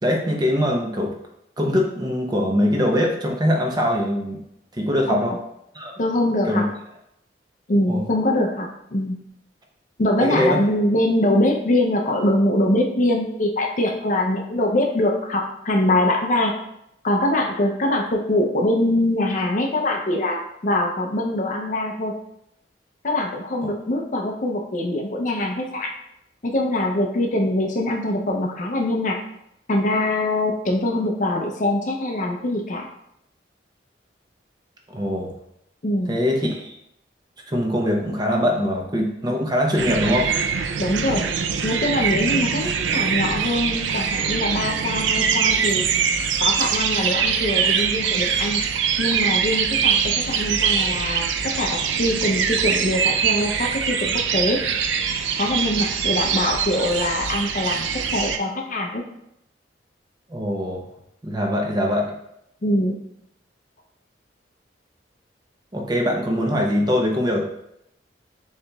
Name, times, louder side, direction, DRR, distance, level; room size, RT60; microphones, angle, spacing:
voice 1, 0.0-1.1 1.6-4.4 4.7-5.4 5.7-5.9 6.5-6.6 7.9-8.0 10.2-10.6 34.9-35.3 36.1-36.8 37.5-40.3 60.3-60.8 61.2-62.1 65.7-67.4, left 1 dB, 20° right, 0 dB, 0.6 m, -22 dB
voice 2, 6.0-6.6 7.7-9.2 10.0-16.5 17.0-22.1 23.0-25.9 26.4-29.2 29.7-32.9 35.8-36.2 40.8-41.2 41.6-45.9 46.4-48.6 49.0-54.6 55.4-59.0 62.6-63.0, left 1 dB, 45° left, 2 dB, 0.5 m, -23 dB
sound 1, 39.8-58.4, right 7 dB, 85° right, 0.4 m, -23 dB
6.6 x 2.9 x 2.3 m, 0.80 s
head